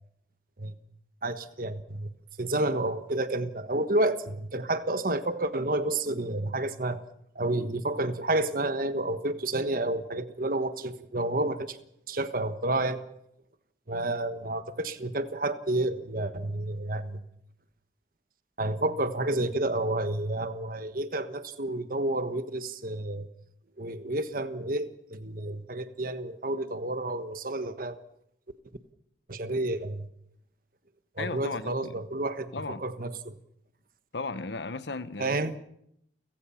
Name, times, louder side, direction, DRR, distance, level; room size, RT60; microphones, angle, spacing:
voice 1, 1.2-2.1 2.4-7.0 7.3-11.8 12.1-13.0 13.9-17.2 18.6-23.3 23.8-27.9 29.3-30.1 31.1-33.3 35.2-35.6, right 2 dB, 50° right, 1.4 m, -30 dB
voice 2, 31.2-32.0 32.5-32.8 34.1-35.4, left 3 dB, 80° left, 1.0 m, -35 dB
30.0 x 16.0 x 5.8 m
head